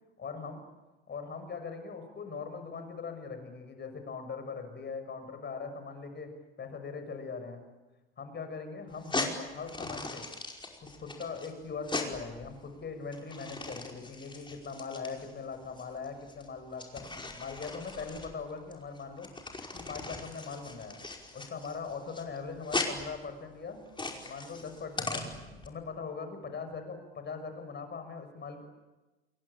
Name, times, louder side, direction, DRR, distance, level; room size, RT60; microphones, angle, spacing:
voice 1, 0.2-0.6 1.1-6.3 6.6-7.6 8.2-10.2 10.8-17.0 17.4-19.3 19.7-21.0 21.3-23.8 24.2-25.3 25.6-28.6, left 5 dB, 35° left, 7 dB, 6.8 m, -41 dB
sound 1, 8.9-25.7, left 3 dB, 15° left, 5.2 m, -39 dB
29.5 x 22.5 x 8.8 m, 1.1 s
figure-of-eight pair, 70°, 32 cm